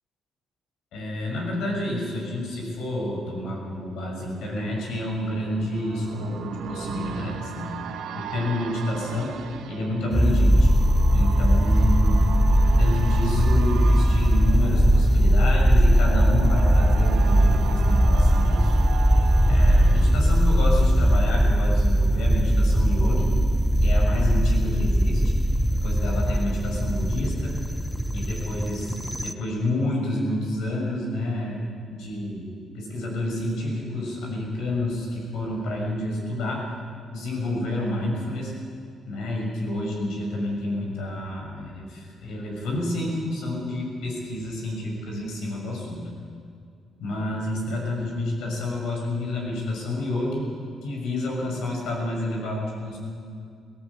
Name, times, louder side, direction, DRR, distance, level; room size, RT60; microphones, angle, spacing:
voice 1, 0.9-7.7 8.1-9.4 9.7-10.7 11.1-12.3 12.7-18.7 19.4-23.3 23.8-25.3 25.7-27.5 28.1-31.6 31.9-32.5 32.7-36.6 37.1-38.5 39.1-46.0 47.0-50.4 50.8-53.0, left 1 dB, 85° left, -1 dB, 6.6 m, -29 dB
sound 1, 3.7-21.5 21.8-21.9, right 7 dB, 85° right, 1.5 m, -37 dB
sound 2, 10.1-29.3, equal, 5° right, 0.9 m, -20 dB
18.5 x 18.0 x 8.5 m, 2.3 s
cardioid pair, 90°, 0 cm